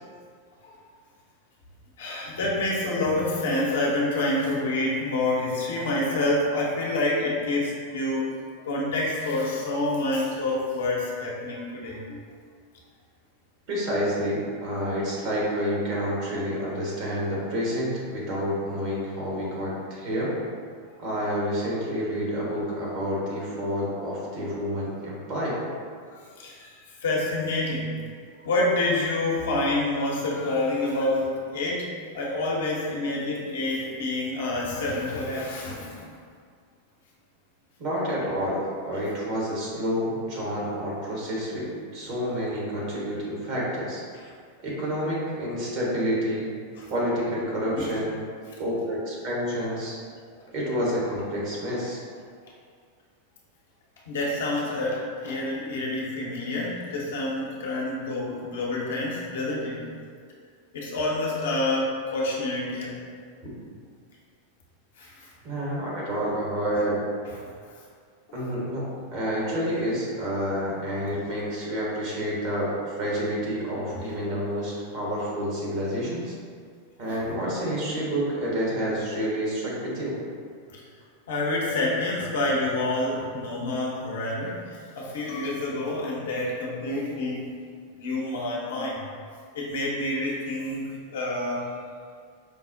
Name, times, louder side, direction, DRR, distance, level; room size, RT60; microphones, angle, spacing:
voice 1, 2.0-8.3 8.6-12.2 26.1-27.9 28.4-31.8 32.1-36.0 46.8-46.9 47.8-47.9 54.1-59.8 60.7-63.0 65.0-65.3 67.4-67.5 77.2-77.3 81.3-87.4 88.0-89.0 89.5-91.7, left 2 dB, 70° left, -4 dB, 0.8 m, -28 dB
voice 2, 13.7-20.3 21.0-25.7 37.8-44.0 44.6-46.5 46.9-48.2 48.6-50.0 50.5-52.0 65.4-67.0 68.3-76.3 77.0-80.2, equal, 50° right, -5 dB, 1.2 m, -29 dB
5.1 x 2.0 x 2.6 m, 2.1 s
figure-of-eight pair, 95°, 0 cm